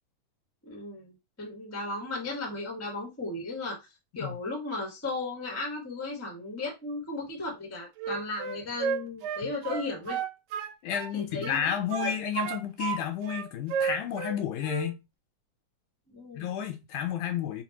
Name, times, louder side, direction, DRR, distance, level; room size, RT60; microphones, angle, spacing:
voice 1, 0.6-3.8 4.1-10.2 11.1-12.1 16.1-16.5, left 2 dB, 15° left, 0.5 m, -35 dB
Wind instrument woodwind instrument, 8.0-11.1 11.4-13.0 13.3-14.4 14.6-14.9, right 7 dB, 75° right, 1.7 m, -32 dB
voice 2, 10.8-15.0 16.4-17.6, left 9 dB, 80° left, 2.2 m, -31 dB
5.7 x 2.5 x 2.9 m
omnidirectional pair, 3.6 m